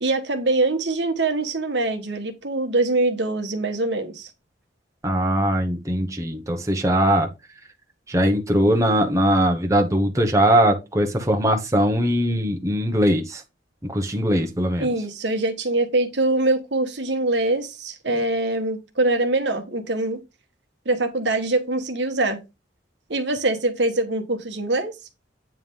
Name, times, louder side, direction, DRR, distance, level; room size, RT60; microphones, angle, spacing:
voice 1, 0.0-4.3 14.8-20.2 20.8-22.4 23.1-24.9, right 2 dB, 65° right, 1.4 m, -23 dB
voice 2, 5.0-7.3 8.1-13.4 13.9-14.9, equal, 15° right, 1.0 m, -20 dB
9.2 x 3.2 x 5.4 m
head